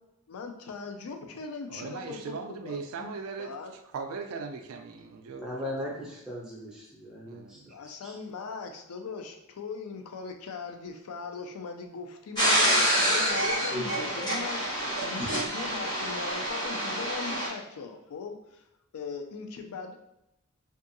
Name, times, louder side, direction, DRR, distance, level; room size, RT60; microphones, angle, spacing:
voice 1, 0.3-3.1 3.4-3.7 7.7-18.6 18.9-20.1, left 5 dB, 80° left, 5 dB, 0.4 m, -39 dB
voice 2, 1.7-3.5 3.9-6.0 7.3-7.7, right 5 dB, 75° right, 5 dB, 0.3 m, -39 dB
voice 3, 5.3-7.8 8.0-8.2, left 1 dB, 5° right, -5 dB, 0.6 m, -38 dB
sound 1, 12.3-17.5, equal, 20° left, 1.3 m, -27 dB
2.6 x 2.4 x 2.6 m, 0.85 s
head